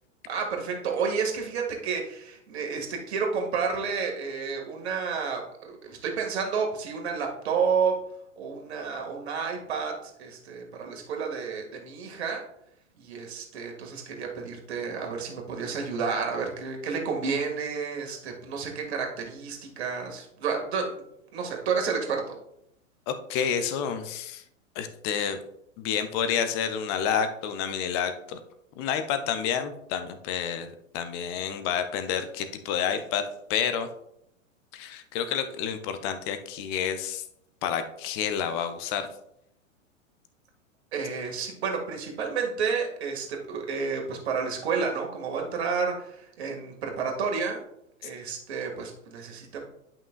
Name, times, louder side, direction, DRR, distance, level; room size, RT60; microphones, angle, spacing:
voice 1, 0.3-8.0 8.4-12.4 13.0-21.0 21.3-22.2 40.9-47.6 48.0-49.7, right 5 dB, 55° right, 1 dB, 2.0 m, -30 dB
voice 2, 23.1-24.4 24.7-25.4 25.8-28.4 28.7-33.9 34.7-37.2 37.6-39.1 48.0-48.1, left 8 dB, 20° left, 9 dB, 0.4 m, -29 dB
10.5 x 5.7 x 2.4 m, 0.75 s
figure-of-eight pair, 100°, 40 cm